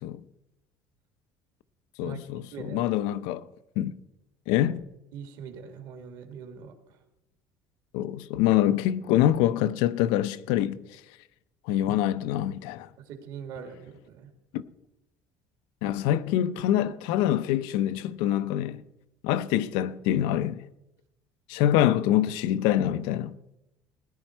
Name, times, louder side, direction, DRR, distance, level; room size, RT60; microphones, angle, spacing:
voice 1, 2.0-3.5 3.8-4.0 4.5-4.8 7.9-11.0 11.7-12.9 14.5-14.6 15.8-18.8 19.2-20.6 21.5-23.4, left 12 dB, 90° left, 0.6 m, -25 dB
voice 2, 2.5-2.9 5.1-6.8 13.0-14.3, right 7 dB, 65° right, 2.1 m, -42 dB
17.5 x 10.5 x 4.5 m
cardioid pair, 165°, 8 cm